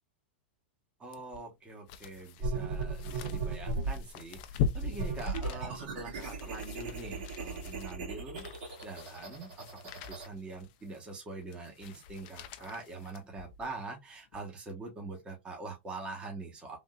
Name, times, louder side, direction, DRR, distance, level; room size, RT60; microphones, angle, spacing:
voice 1, 1.0-8.5 8.8-9.8 10.1-16.8, right 3 dB, 15° right, 1.1 m, -44 dB
sound 1, 1.1-13.8 14.3-14.4, left 7 dB, 50° left, 0.5 m, -41 dB
sound 2, 2.4-4.0 4.7-10.3, right 3 dB, 60° right, 2.0 m, -37 dB
3.5 x 2.7 x 2.3 m
supercardioid pair, 140°, 6 cm